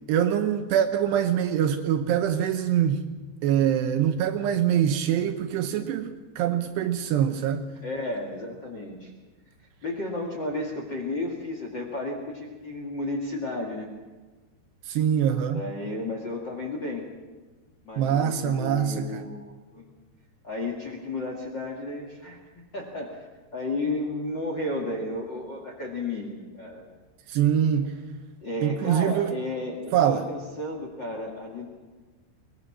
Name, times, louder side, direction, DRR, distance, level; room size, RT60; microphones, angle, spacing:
voice 1, 0.1-3.1 3.4-7.6 14.9-15.6 18.0-19.2 27.3-28.0 28.6-29.3 29.9-30.3, right 9 dB, 75° right, 2.8 m, -24 dB
voice 2, 7.8-9.1 9.8-13.9 15.5-17.0 17.8-19.9 20.4-22.4 22.7-23.2 23.5-26.8 28.4-31.7, left 2 dB, 40° left, 1.7 m, -33 dB
22.5 x 20.5 x 6.0 m
omnidirectional pair, 5.4 m